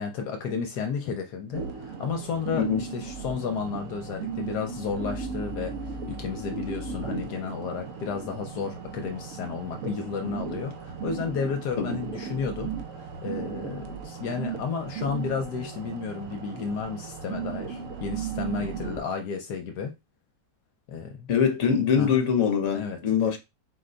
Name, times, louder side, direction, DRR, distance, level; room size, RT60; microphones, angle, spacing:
voice 1, 0.0-12.7 13.0-19.9 20.9-21.3 22.0-22.2 22.7-23.0, left 6 dB, 75° left, 1.2 m, -32 dB
sound 1, 1.5-19.0, right 6 dB, 65° right, 0.9 m, -36 dB
voice 2, 21.3-23.4, left 7 dB, 50° left, 1.1 m, -23 dB
4.8 x 2.2 x 3.8 m
omnidirectional pair, 1.9 m